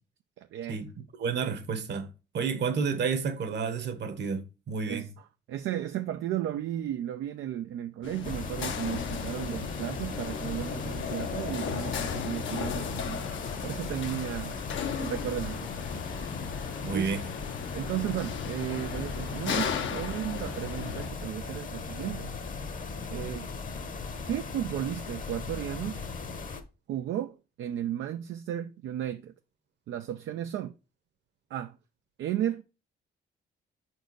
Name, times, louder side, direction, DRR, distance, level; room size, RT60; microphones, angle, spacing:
voice 1, 0.4-0.8 4.9-5.1 5.5-13.2 13.6-14.6 15.0-15.7 16.9-17.2 17.7-22.3 23.1-23.5 24.2-26.0 26.9-29.3 29.9-30.7 31.5-31.8 32.2-32.6, right 11 dB, 75° right, 0.5 m, -34 dB
voice 2, 1.2-5.1 16.8-17.2, right 5 dB, 60° right, 1.2 m, -30 dB
sound 1, 8.0-21.1, left 7 dB, 75° left, 0.9 m, -36 dB
sound 2, 8.2-26.6, left 4 dB, 45° left, 1.0 m, -38 dB
5.1 x 4.6 x 4.6 m
cardioid pair, 90°, 20 cm